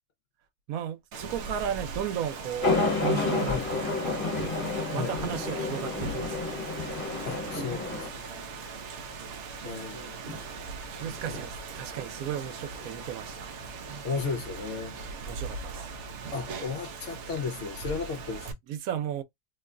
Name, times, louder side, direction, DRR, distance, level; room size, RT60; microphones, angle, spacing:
voice 1, 0.7-3.6 4.1-4.3 4.9-6.6 9.6-10.1 10.9-13.5 15.2-15.9 18.7-19.2, right 9 dB, 85° right, 1.1 m, -35 dB
Rain, 1.1-18.5, right 4 dB, 65° right, 0.8 m, -40 dB
sound 1, 2.6-8.1, left 3 dB, 40° left, 1.2 m, -30 dB
sound 2, 3.3-3.8 4.4-4.6 5.2-5.4 5.8-6.3 6.5-7.8 8.3-8.5 10.2-10.5 11.0-12.1 12.7-12.9, equal, 40° right, 1.3 m, -42 dB
voice 2, 7.2-8.2 9.6-10.2 11.3-11.4 14.0-15.0 16.3-18.5, left 5 dB, 65° left, 0.9 m, -34 dB
3.0 x 2.2 x 3.6 m
omnidirectional pair, 1.5 m